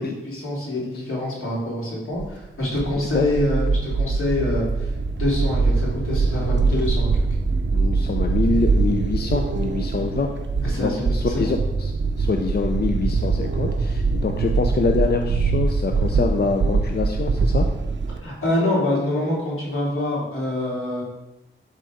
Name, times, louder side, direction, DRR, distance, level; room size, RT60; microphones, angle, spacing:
voice 1, 0.0-7.3 10.6-11.1 18.2-21.0, left 1 dB, 85° left, -5 dB, 3.5 m, -26 dB
sound 1, 2.2-18.2, right 4 dB, 60° right, 0.8 m, -23 dB
voice 2, 7.7-10.3 10.8-11.9 12.2-17.7, left 4 dB, 50° left, 4 dB, 0.6 m, -25 dB
11.5 x 4.1 x 5.0 m, 0.96 s
wide cardioid pair, 150°, 21 cm